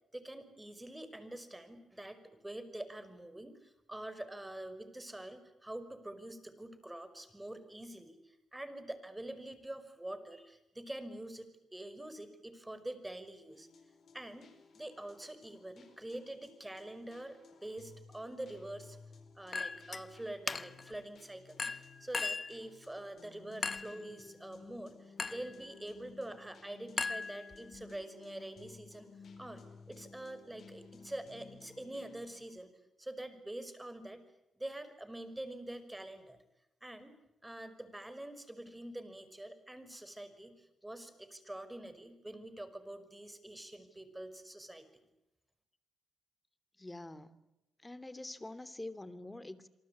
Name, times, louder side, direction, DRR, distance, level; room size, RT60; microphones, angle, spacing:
voice 1, 0.1-2.2 2.4-13.7 14.1-14.5 14.7-19.0 19.3-29.1 29.4-32.7 33.0-34.2 34.6-36.4 36.8-37.2 37.4-44.8, right 1 dB, 15° right, 12 dB, 5.7 m, -46 dB
sound 1, 13.5-32.3, left 5 dB, 60° left, 4.8 m, -57 dB
Chink clink, 19.5-20.0 20.5-20.9 21.6-22.6 23.6-24.0 25.2-25.5 27.0-27.8, left 4 dB, 40° left, 1.1 m, -37 dB
voice 2, 46.8-47.4 47.8-49.7, left 2 dB, 20° left, 12 dB, 2.9 m, -45 dB
27.5 x 24.0 x 8.6 m, 0.89 s
supercardioid pair, 45°, 0 cm